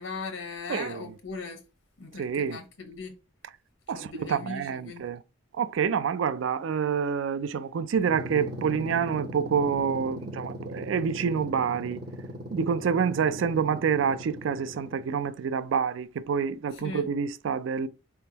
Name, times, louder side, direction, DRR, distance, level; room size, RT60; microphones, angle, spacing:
voice 1, 0.0-1.6 2.0-3.1 3.9-5.1 16.7-17.1, left 3 dB, 85° left, 0.9 m, -38 dB
voice 2, 0.7-1.0 2.2-2.6 3.9-5.2 5.6-12.0 12.5-17.9, right 6 dB, 70° right, 0.3 m, -27 dB
sound 1, 7.9-15.3, equal, 45° right, 0.7 m, -39 dB
4.2 x 3.5 x 2.8 m
head